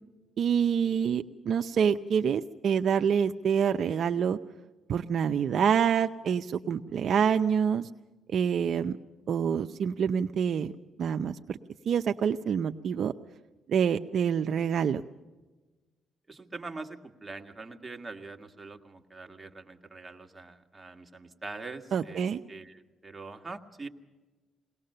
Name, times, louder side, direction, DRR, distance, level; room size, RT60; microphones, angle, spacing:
voice 1, 0.4-4.4 4.9-7.9 8.3-9.0 9.3-10.7 11.0-11.6 11.9-13.1 13.7-15.0 21.9-22.4, right 7 dB, 60° right, 7 dB, 0.6 m, -26 dB
voice 2, 16.3-23.9, right 3 dB, 20° right, 4 dB, 1.8 m, -43 dB
21.5 x 19.0 x 6.7 m, 1.2 s
cardioid pair, 90°, 0 cm